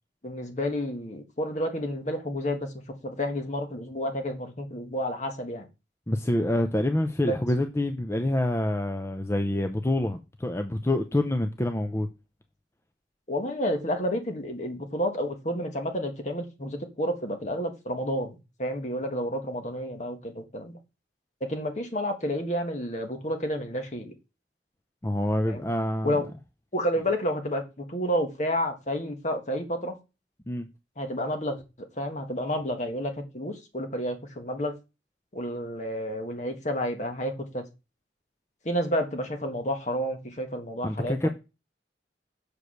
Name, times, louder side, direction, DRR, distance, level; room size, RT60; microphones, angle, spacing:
voice 1, 0.2-5.7 7.3-7.4 13.3-20.8 21.4-24.1 25.4-25.6 26.0-26.2 26.7-29.9 31.0-31.6 32.0-34.8 35.3-37.6 38.6-41.3, equal, 40° left, 1.6 m, -30 dB
voice 2, 6.1-12.1 25.0-26.2 30.5-30.7 40.8-41.3, left 1 dB, 15° left, 0.5 m, -26 dB
6.7 x 4.8 x 6.4 m
head